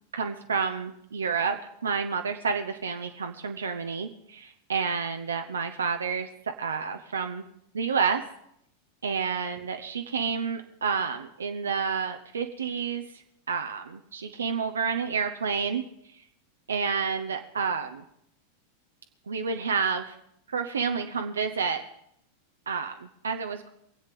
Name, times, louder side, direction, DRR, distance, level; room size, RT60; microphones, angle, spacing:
voice 1, 0.1-6.3 6.6-7.4 7.7-8.2 9.0-13.0 13.5-15.8 16.7-18.0 19.3-20.1 20.5-21.8 22.7-23.7, right 6 dB, 70° right, 5 dB, 0.8 m, -29 dB
22.5 x 8.2 x 5.3 m, 0.74 s
figure-of-eight pair, 90°, 0 cm